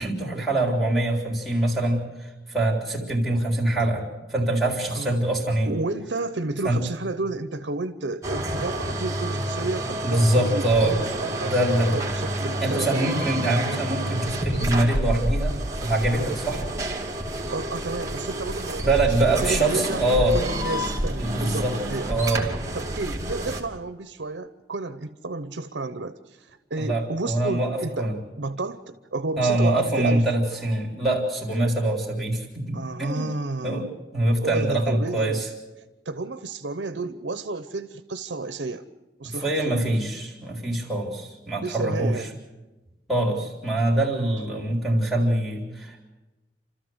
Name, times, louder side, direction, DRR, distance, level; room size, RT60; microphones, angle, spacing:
voice 1, 0.0-4.0 4.3-5.7 6.6-6.8 10.0-11.0 11.4-12.0 12.6-16.7 18.8-20.4 21.2-21.7 22.1-22.4 26.8-28.1 29.4-33.3 33.6-33.9 34.1-35.5 39.2-42.2 43.1-46.0, right 1 dB, ahead, 0 dB, 3.9 m, -24 dB
voice 2, 5.6-13.2 17.5-22.1 22.7-30.3 32.7-33.9 34.4-35.4 36.0-38.8 39.2-39.8 41.6-42.4, right 3 dB, 80° right, 11 dB, 0.9 m, -31 dB
sound 1, 8.2-23.6, right 1 dB, 20° right, 2.6 m, -29 dB
29.5 x 13.5 x 8.0 m, 1.1 s
head